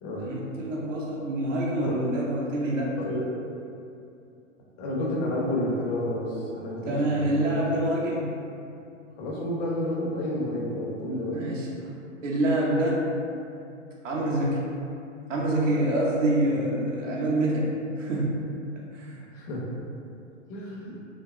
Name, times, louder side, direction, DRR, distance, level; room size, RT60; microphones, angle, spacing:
voice 1, 0.2-3.0 6.8-8.3 11.3-11.7 12.2-13.1 14.0-14.6 15.3-18.5 18.9-19.2, right 1 dB, 75° right, -4 dB, 0.6 m, -26 dB
voice 2, 1.8-2.3 2.9-3.3 4.8-7.8 9.2-11.5 16.5-16.6 19.3-19.6 20.5-21.0, left 1 dB, 30° left, -4 dB, 0.5 m, -30 dB
2.8 x 2.2 x 2.3 m, 2.6 s
figure-of-eight pair, 100°, 38 cm